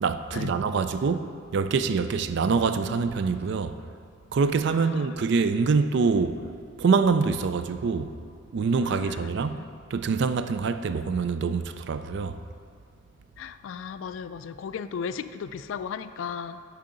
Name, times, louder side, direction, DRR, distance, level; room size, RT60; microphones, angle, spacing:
voice 1, 0.0-3.8 4.3-6.5 6.8-8.1 8.5-9.6 9.9-12.4, right 5 dB, 60° right, 0.4 m, -25 dB
voice 2, 4.7-5.3 8.8-9.7 13.4-16.6, left 6 dB, 70° left, 0.3 m, -36 dB
11.5 x 4.8 x 3.8 m
head